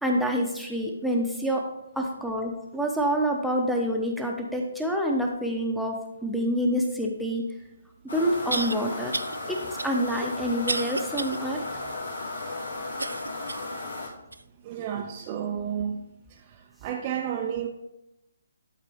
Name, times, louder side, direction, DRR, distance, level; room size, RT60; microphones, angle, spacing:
voice 1, 0.0-1.6 2.0-7.4 8.1-9.1 9.5-9.6 9.8-11.6, equal, ahead, 0 dB, 1.0 m, -27 dB
sound 1, 7.5-7.6 8.5-8.8 9.1-9.4 9.8-11.4 11.8-11.9 13.0-13.7 14.3-14.4 15.2-15.3, right 2 dB, 85° right, 0.3 m, -31 dB
sound 2, 8.1-14.1, left 2 dB, 80° left, 3.1 m, -35 dB
voice 2, 14.6-16.0 16.8-17.7, right 8 dB, 30° right, 1 dB, 0.6 m, -31 dB
11.0 x 4.2 x 3.6 m, 0.89 s
figure-of-eight pair, 140°, 0 cm